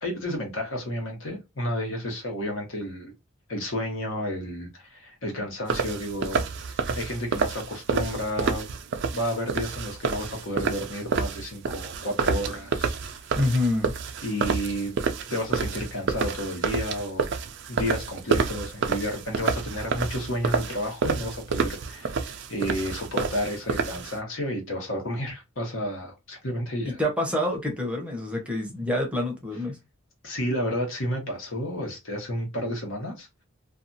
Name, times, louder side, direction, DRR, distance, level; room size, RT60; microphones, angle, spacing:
voice 1, 0.0-3.1 3.5-6.5 6.9-8.7 9.1-13.2 14.2-14.9 15.3-17.3 17.7-27.0 30.2-33.3, equal, 70° left, 1.2 m, -31 dB
sound 1, 5.7-24.2, right 5 dB, 60° right, 0.4 m, -29 dB
voice 2, 13.4-13.9 26.8-29.8, left 1 dB, 5° right, 0.7 m, -27 dB
2.6 x 2.3 x 2.6 m
head